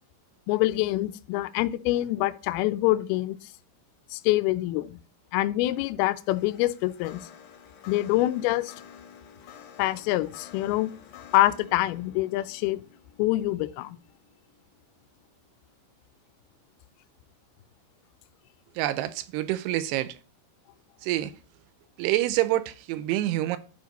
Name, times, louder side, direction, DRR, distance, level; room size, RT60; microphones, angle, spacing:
voice 1, 0.5-3.4 4.1-5.0 5.3-7.2 7.9-8.7 9.8-10.9 11.3-12.8 13.2-14.0, left 16 dB, 80° left, 2.3 m, -25 dB
sound 1, 6.1-15.5, left 8 dB, 60° left, 2.3 m, -51 dB
voice 2, 18.8-20.2 21.0-21.3 22.0-23.6, right 15 dB, 85° right, 2.6 m, -27 dB
11.5 x 5.2 x 4.0 m
omnidirectional pair, 4.8 m